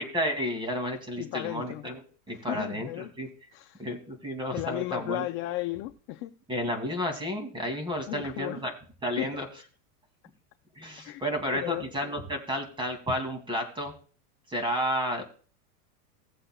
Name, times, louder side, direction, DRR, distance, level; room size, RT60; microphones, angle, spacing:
voice 1, 0.0-2.0 2.3-3.3 3.8-5.3 6.5-8.7 9.0-9.5 10.8-13.9 14.5-15.2, equal, 10° right, 2.4 m, -31 dB
voice 2, 1.2-1.9 2.3-3.1 3.5-3.9 4.5-6.3 8.1-8.6 9.2-9.3 11.0-11.2 11.5-11.9, left 17 dB, 30° left, 0.4 m, -35 dB
18.0 x 7.6 x 2.3 m
supercardioid pair, 145°, 46 cm